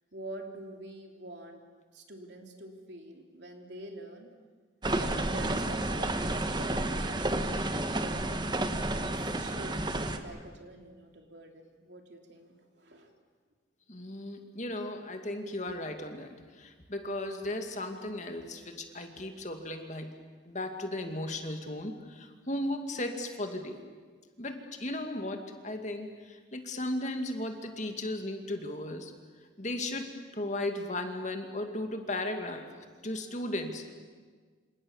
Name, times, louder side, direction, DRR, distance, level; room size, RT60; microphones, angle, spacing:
voice 1, 0.1-1.6 1.9-4.3 4.9-8.6 9.1-13.1, right 1 dB, 65° right, 3 dB, 3.3 m, -46 dB
sound 1, 4.8-10.2, right 1 dB, 25° right, 1.3 m, -31 dB
voice 2, 13.9-20.1 20.5-23.8 24.4-29.1 29.6-32.7 33.0-33.9, left 1 dB, 40° left, 5 dB, 2.3 m, -36 dB
27.5 x 27.0 x 7.3 m, 1.5 s
head